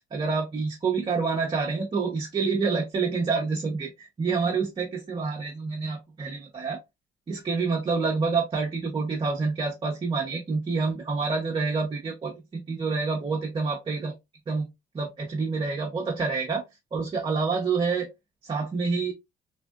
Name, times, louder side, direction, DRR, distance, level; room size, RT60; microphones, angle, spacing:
voice 1, 0.1-6.8 7.3-14.1 14.5-14.7 14.9-16.6 16.9-18.1 18.4-19.1, right 4 dB, 30° right, 0.9 m, -27 dB
3.5 x 2.5 x 2.2 m
cardioid pair, 110°, 17 cm